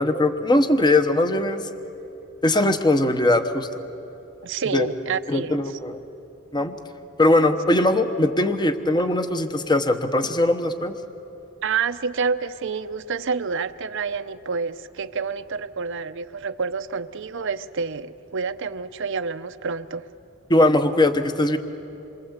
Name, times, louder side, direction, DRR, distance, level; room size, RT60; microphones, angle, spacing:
voice 1, 0.0-1.6 2.4-3.7 4.7-4.9 5.3-6.0 6.5-6.7 7.2-10.9 20.5-21.6, left 1 dB, 20° left, 8 dB, 1.1 m, -20 dB
voice 2, 4.4-5.6 11.6-20.1, right 5 dB, 65° right, 10 dB, 0.7 m, -28 dB
27.5 x 24.0 x 8.2 m, 3.0 s
head